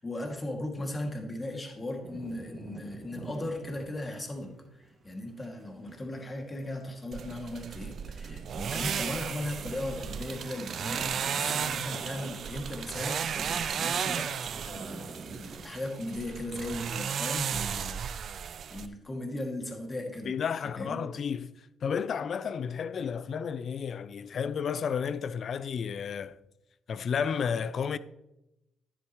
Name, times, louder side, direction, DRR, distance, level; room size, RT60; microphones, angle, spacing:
voice 1, 0.0-14.3 14.7-20.3 20.8-21.0, left 1 dB, 25° left, 2.3 m, -37 dB
sound 1, 2.0-15.6, right 3 dB, 35° right, 2.1 m, -47 dB
sound 2, 7.1-18.9, right 7 dB, 60° right, 0.6 m, -34 dB
voice 2, 20.3-26.4 26.9-28.0, left 7 dB, 55° left, 0.5 m, -32 dB
11.0 x 10.0 x 3.1 m
cardioid pair, 90°, 0 cm